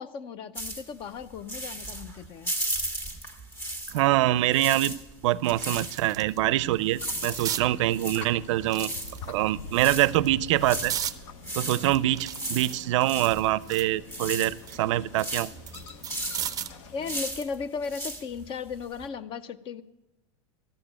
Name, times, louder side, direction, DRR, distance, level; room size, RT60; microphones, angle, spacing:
voice 1, 0.0-2.5 16.9-19.8, left 5 dB, 35° left, 0.6 m, -36 dB
sound 1, 0.6-4.2 4.4-19.1, right 1 dB, 15° left, 1.5 m, -36 dB
voice 2, 3.9-5.0 5.2-8.9 9.3-10.9 11.6-15.5, right 15 dB, 80° right, 0.4 m, -25 dB
sound 2, 4.4-4.5 5.0-6.4 6.7-7.7 8.6-9.5 10.1-11.2 11.7-14.0 14.4-16.8 18.2-18.4, right 10 dB, 25° right, 0.5 m, -37 dB
sound 3, 6.8-17.2, left 6 dB, 80° left, 0.8 m, -45 dB
13.5 x 6.8 x 8.7 m
supercardioid pair, 135°, 15 cm